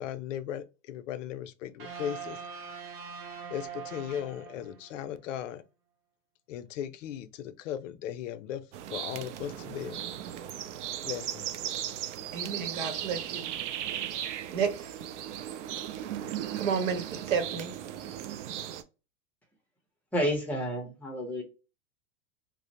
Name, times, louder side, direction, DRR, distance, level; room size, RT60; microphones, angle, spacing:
voice 1, 0.0-2.4 3.5-5.6 6.5-8.6 8.9-10.0 11.1-11.5 12.9-13.0, left 10 dB, 80° left, 0.5 m, -37 dB
sound 1, 1.8-5.0, right 6 dB, 50° right, 1.1 m, -42 dB
sound 2, 8.7-18.8, right 11 dB, 70° right, 0.5 m, -37 dB
voice 2, 12.3-13.5 14.5-14.9 16.6-17.8, right 6 dB, 90° right, 0.9 m, -31 dB
voice 3, 20.1-21.4, equal, 5° left, 0.6 m, -30 dB
2.5 x 2.0 x 2.8 m
supercardioid pair, 145°, 37 cm